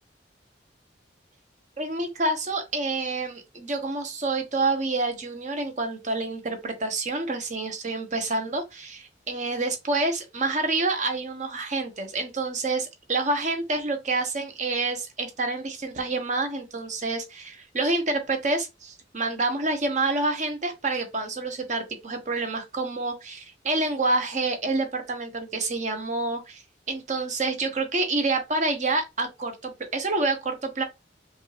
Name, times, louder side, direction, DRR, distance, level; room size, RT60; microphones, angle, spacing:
voice 1, 1.8-26.6 26.9-30.8, right 3 dB, 40° right, 1.0 m, -28 dB
5.1 x 2.5 x 3.3 m
head